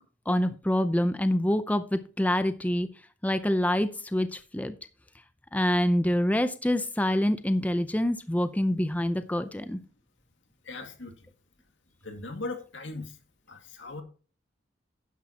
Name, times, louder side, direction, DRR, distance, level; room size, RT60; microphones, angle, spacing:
voice 1, 0.3-2.9 3.2-4.7 5.5-9.8, left 1 dB, 10° left, 0.5 m, -26 dB
voice 2, 10.6-11.3 12.0-13.2 13.5-14.0, left 2 dB, 80° left, 2.2 m, -39 dB
11.5 x 10.5 x 2.9 m
head